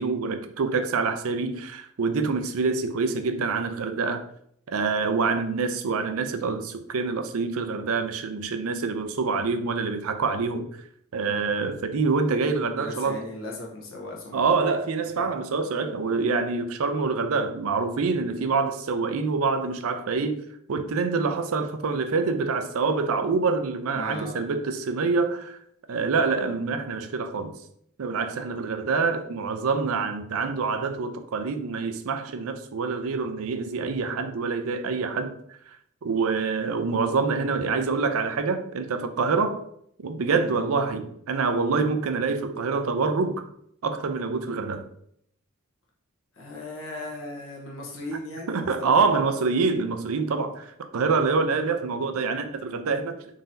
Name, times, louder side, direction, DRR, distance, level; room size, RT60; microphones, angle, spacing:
voice 1, 0.0-4.2 4.7-10.7 11.1-13.2 14.3-20.4 20.7-25.6 25.9-27.5 28.0-35.3 36.0-39.6 40.0-43.4 43.8-44.9 48.5-53.2, right 4 dB, 75° right, 0.5 m, -26 dB
voice 2, 11.2-11.5 12.8-14.4 15.0-15.4 23.9-24.4 40.4-40.6 46.3-49.3, left 2 dB, 65° left, 1.0 m, -38 dB
4.0 x 3.9 x 2.6 m
head